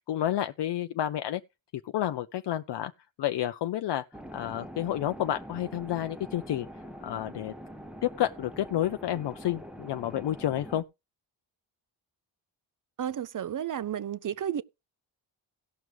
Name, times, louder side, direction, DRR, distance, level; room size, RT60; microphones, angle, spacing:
voice 1, 0.1-1.4 1.9-2.9 3.2-4.0 4.3-6.7 7.0-7.5 8.0-10.8, left 12 dB, 60° left, 0.5 m, -30 dB
sound 1, 4.1-10.8, equal, ahead, 0.8 m, -44 dB
voice 2, 13.0-14.6, right 9 dB, 45° right, 0.5 m, -32 dB
17.5 x 6.2 x 3.4 m
wide cardioid pair, 155°, 47 cm